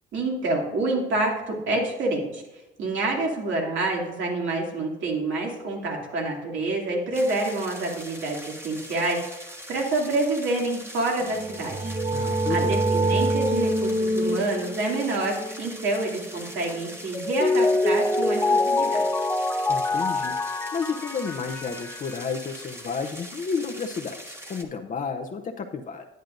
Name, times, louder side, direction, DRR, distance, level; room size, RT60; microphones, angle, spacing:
voice 1, 0.1-2.4 2.8-11.9 12.2-19.0, right 2 dB, 75° right, -1 dB, 2.5 m, -27 dB
sound 1, 7.1-24.6, equal, 10° right, 1.3 m, -42 dB
sound 2, 11.3-16.9, right 1 dB, 30° right, 0.7 m, -27 dB
voice 2, 12.1-12.8 19.7-20.3 20.7-26.0, left 5 dB, 40° left, 3 dB, 0.7 m, -31 dB
Mallet percussion, 17.1-22.1, left 2 dB, 10° left, 0.4 m, -24 dB
10.5 x 9.2 x 2.6 m, 1.0 s
cardioid pair, 90°, 20 cm